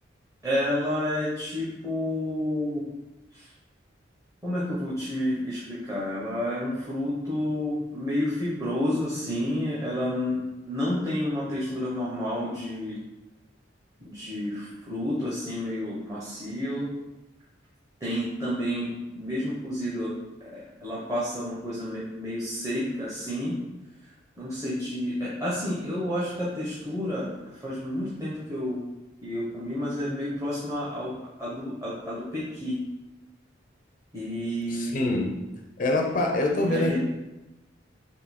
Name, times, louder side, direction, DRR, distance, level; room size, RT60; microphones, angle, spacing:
voice 1, 0.4-2.9 3.3-3.5 4.4-13.0 14.0-16.9 18.0-20.2 20.4-23.5 24.4-28.8 29.2-32.8 34.1-35.2 36.6-37.0, left 1 dB, 15° right, -8 dB, 0.7 m, -30 dB
voice 2, 34.7-35.4 35.8-37.0, left 2 dB, 45° left, 2 dB, 0.4 m, -25 dB
3.6 x 2.6 x 4.2 m, 1.0 s
head